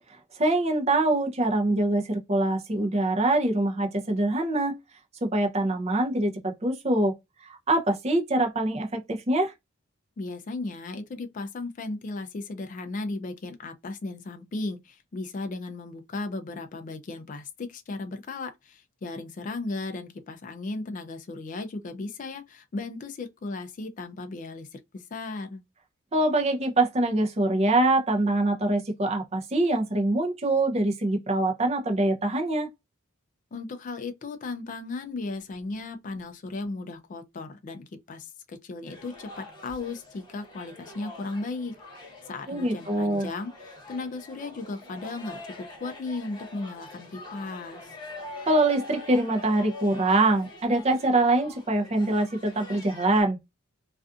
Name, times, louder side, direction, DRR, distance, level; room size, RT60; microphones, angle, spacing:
voice 1, 0.4-4.8 5.2-7.1 7.5-9.5 26.1-32.7 42.5-43.3 48.5-53.4, right 2 dB, 30° right, 0.5 m, -24 dB
voice 2, 10.2-25.6 33.5-48.0, left 3 dB, 40° left, 0.3 m, -36 dB
sound 1, 38.9-53.2, left 2 dB, 20° left, 0.9 m, -44 dB
2.4 x 2.4 x 2.3 m
head